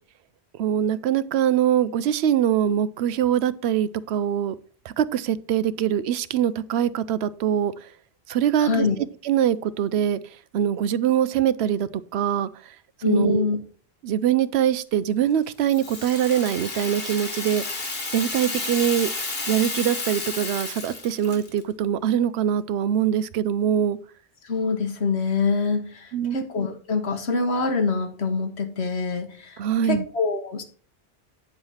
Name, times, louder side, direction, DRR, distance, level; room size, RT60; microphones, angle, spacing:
voice 1, 0.6-4.5 5.0-7.7 8.3-8.9 9.2-10.2 10.5-12.5 13.0-13.5 14.0-17.6 18.1-19.1 19.5-24.0 26.1-26.4 29.6-30.0, right 10 dB, 80° right, 16 dB, 0.8 m, -23 dB
voice 2, 8.6-9.0 13.0-13.6 24.4-30.6, left 4 dB, 85° left, 7 dB, 1.5 m, -25 dB
Rattle (instrument), 15.6-21.6, left 3 dB, 65° left, 1.9 m, -31 dB
8.9 x 4.8 x 5.5 m, 0.43 s
omnidirectional pair, 1.1 m